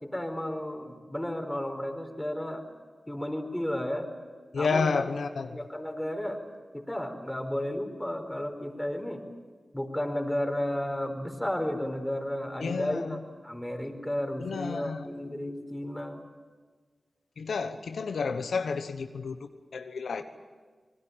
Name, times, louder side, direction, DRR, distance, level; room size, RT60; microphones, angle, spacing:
voice 1, 0.0-2.7 3.1-4.1 4.5-4.9 5.5-6.4 6.7-9.2 9.7-13.2 13.4-16.2, left 1 dB, 10° left, 5 dB, 4.7 m, -33 dB
voice 2, 4.5-5.7 12.6-13.2 14.4-15.1 17.4-20.2, left 5 dB, 90° left, 8 dB, 1.1 m, -31 dB
26.0 x 20.0 x 9.0 m, 1.5 s
cardioid pair, 40°, 0 cm